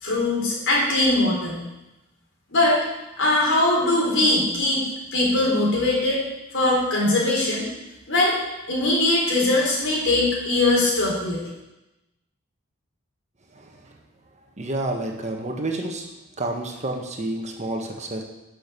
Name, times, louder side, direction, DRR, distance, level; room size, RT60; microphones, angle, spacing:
voice 1, 0.0-1.6 2.5-2.8 3.2-4.8 5.1-6.2 6.5-7.6 8.1-8.4 8.7-11.4, left 2 dB, 60° left, -3 dB, 4.1 m, -21 dB
voice 2, 13.5-13.9 14.6-16.1 16.4-18.2, right 2 dB, 30° right, 2 dB, 1.6 m, -29 dB
11.5 x 6.6 x 7.0 m, 0.96 s
head